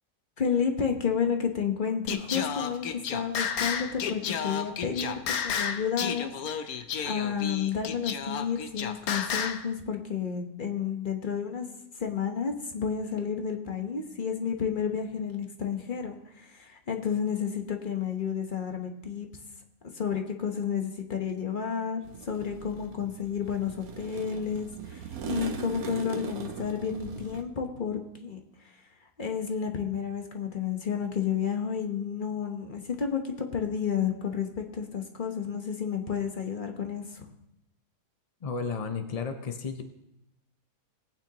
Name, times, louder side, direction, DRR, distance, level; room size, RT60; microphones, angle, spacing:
voice 1, 0.4-11.7 12.0-19.3 19.9-28.4 29.2-37.2, left 7 dB, 35° left, 4 dB, 1.1 m, -31 dB
Singing, 2.1-9.7, left 7 dB, 70° left, 1.1 m, -32 dB
sound 1, 22.0-27.4, right 6 dB, 65° right, 1.3 m, -40 dB
voice 2, 38.4-39.8, left 5 dB, 50° left, 6 dB, 0.4 m, -33 dB
20.0 x 9.0 x 2.9 m, 0.85 s
omnidirectional pair, 1.7 m